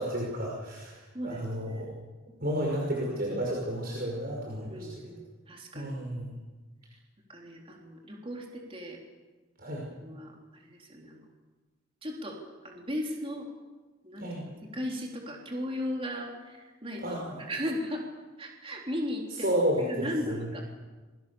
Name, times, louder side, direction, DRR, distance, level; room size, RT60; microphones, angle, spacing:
voice 1, 0.0-1.9 2.4-4.9 5.7-6.3 9.6-9.8 14.2-14.5 17.0-17.4 19.4-20.6, equal, 45° right, -2 dB, 5.6 m, -32 dB
voice 2, 1.1-1.9 4.7-5.2 5.5-5.9 7.3-9.0 10.0-11.3 12.0-12.4 12.6-13.5 14.0-18.0 18.4-20.6, equal, 25° right, 0 dB, 3.6 m, -37 dB
27.5 x 23.0 x 7.1 m, 1.3 s
head